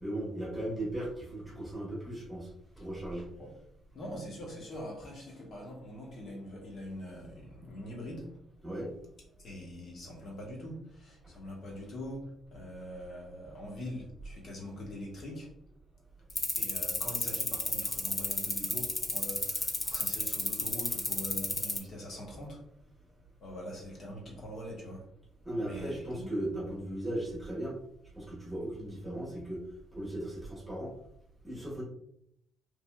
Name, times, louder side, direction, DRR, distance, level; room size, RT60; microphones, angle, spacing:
voice 1, 0.0-2.5 2.8-3.3 8.6-8.9 25.4-27.8 28.1-29.6 29.9-30.9 31.4-31.8, right 1 dB, 5° right, -6 dB, 1.3 m, -37 dB
voice 2, 3.9-8.4 9.4-15.5 16.5-22.6 23.4-25.1 25.6-26.3, left 1 dB, 55° left, -1 dB, 1.1 m, -43 dB
sound 1, 16.3-21.8, left 2 dB, 30° left, 0.6 m, -31 dB
3.2 x 2.7 x 2.2 m, 0.73 s
cardioid pair, 90°, 0 cm